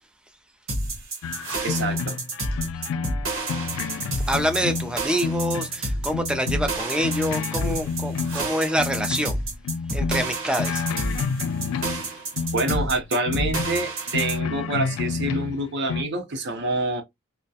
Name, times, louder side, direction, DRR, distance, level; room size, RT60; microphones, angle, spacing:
sound 1, 0.7-14.4, right 2 dB, 85° right, 1.0 m, -30 dB
sound 2, 1.2-5.8 6.1-9.3 9.6-12.1 12.4-16.0, left 5 dB, 85° left, 0.3 m, -29 dB
voice 1, 1.6-2.2 2.6-2.7 12.5-17.0, right 2 dB, 55° right, 0.6 m, -27 dB
voice 2, 4.3-9.4 9.9-10.9, equal, 5° right, 0.3 m, -26 dB
2.3 x 2.1 x 2.6 m
head